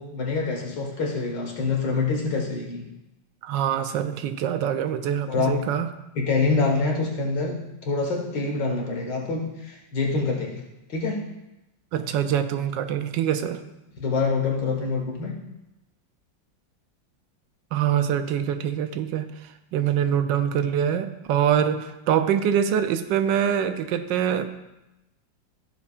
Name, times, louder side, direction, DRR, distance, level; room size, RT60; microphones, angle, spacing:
voice 1, 0.0-2.9 5.3-5.6 6.2-7.6 7.8-10.6 10.9-11.2 14.0-15.3, left 4 dB, 70° left, 0 dB, 2.2 m, -26 dB
voice 2, 3.4-5.9 11.9-13.6 17.7-19.3 19.7-24.7, right 9 dB, 80° right, 9 dB, 1.3 m, -24 dB
14.5 x 7.2 x 2.4 m, 0.94 s
omnidirectional pair, 2.0 m